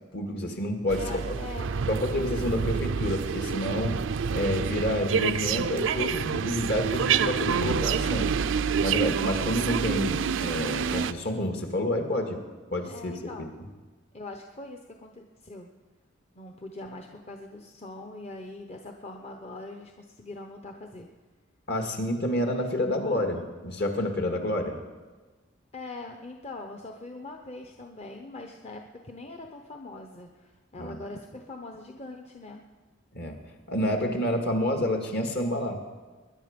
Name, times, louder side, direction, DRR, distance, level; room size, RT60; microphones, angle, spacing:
voice 1, 0.1-1.4 1.9-4.0 4.3-8.3 8.8-12.4 12.7-13.5 21.7-24.8 30.8-31.0 33.1-33.4 33.7-35.8, left 1 dB, 60° left, 4 dB, 2.0 m, -29 dB
sound 1, 0.9-11.1, right 6 dB, 75° right, 0.5 m, -28 dB
voice 2, 1.0-1.8 12.8-13.6 14.1-15.7 16.3-21.1 25.7-32.6, left 2 dB, 35° left, 3 dB, 0.8 m, -42 dB
21.5 x 10.5 x 5.2 m, 1.3 s
head